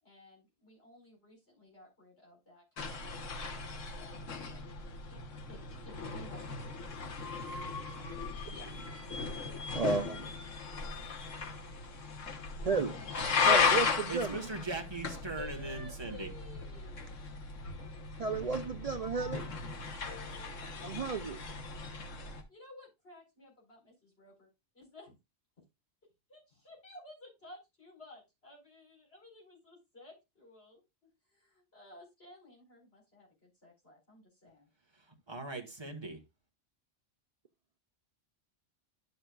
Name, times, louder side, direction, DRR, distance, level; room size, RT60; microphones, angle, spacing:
voice 1, 0.0-5.2 5.5-6.7 7.8-8.0 8.5-8.8 15.3-17.0 20.0-21.2 22.5-24.5 24.7-25.2 26.3-34.7, left 2 dB, 55° left, 4.7 m, -54 dB
sound 1, 2.8-22.4, left 5 dB, 85° left, 1.5 m, -36 dB
voice 2, 9.7-10.3 12.6-12.9 13.4-14.4 18.2-19.4 20.8-21.4, right 4 dB, 55° right, 0.4 m, -32 dB
voice 3, 14.1-16.3 35.3-36.2, right 3 dB, 20° right, 1.4 m, -39 dB
11.0 x 6.8 x 2.3 m
omnidirectional pair, 1.3 m